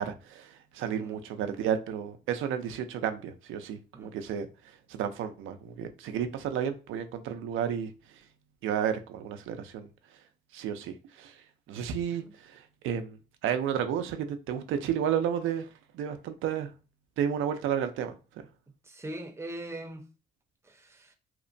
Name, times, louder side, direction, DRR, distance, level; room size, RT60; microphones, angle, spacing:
voice 1, 0.0-8.2 8.6-9.9 10.5-15.7 15.9-16.7 17.2-18.2, right 8 dB, 85° right, 0.4 m, -32 dB
voice 2, 18.8-20.1 20.6-21.1, right 1 dB, 15° right, 0.6 m, -41 dB
2.8 x 2.1 x 2.6 m
cardioid pair, 90°, 20 cm